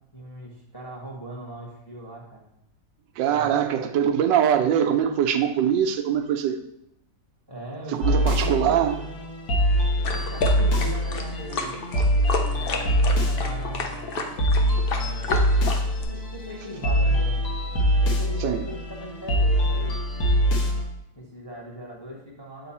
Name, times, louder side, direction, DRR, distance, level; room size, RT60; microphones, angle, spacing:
voice 1, 0.1-2.4 3.3-3.5 7.5-9.1 10.1-11.8 12.5-14.4 15.0-15.3 16.0-17.4 18.0-20.0 21.1-22.7, right 1 dB, 15° left, -2 dB, 1.0 m, -39 dB
voice 2, 3.2-6.6 7.9-9.0 18.4-18.6, right 9 dB, 85° right, 7 dB, 1.3 m, -22 dB
sound 1, 8.0-20.8, equal, 50° left, 1.3 m, -24 dB
sound 2, 10.0-16.0, left 4 dB, 85° left, 0.5 m, -30 dB
7.6 x 3.7 x 4.2 m, 0.79 s
omnidirectional pair, 1.9 m